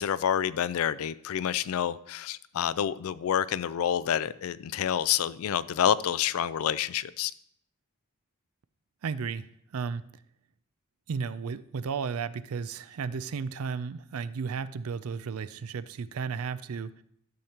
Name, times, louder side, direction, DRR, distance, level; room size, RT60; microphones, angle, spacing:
voice 1, 0.0-7.3, left 9 dB, 80° left, 0.4 m, -28 dB
voice 2, 9.0-9.5 9.7-10.0 11.1-17.0, right 5 dB, 80° right, 0.4 m, -34 dB
12.0 x 6.5 x 2.9 m
head